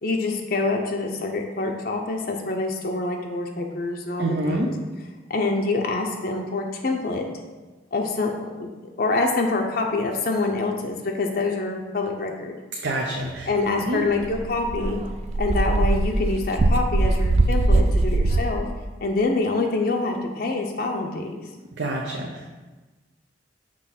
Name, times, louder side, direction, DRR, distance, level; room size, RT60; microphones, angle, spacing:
voice 1, 0.0-4.7 5.3-7.3 7.9-8.7 9.0-12.6 13.5-15.0 15.4-18.7 19.0-21.5, left 3 dB, 50° left, 2 dB, 0.5 m, -26 dB
voice 2, 4.2-4.7 12.8-13.5 13.9-14.0 21.8-22.5, right 1 dB, 75° right, -1 dB, 0.7 m, -27 dB
Dog, 13.8-13.9 14.2-18.4, right 2 dB, 35° right, 0.3 m, -21 dB
6.1 x 3.0 x 5.7 m, 1.2 s
head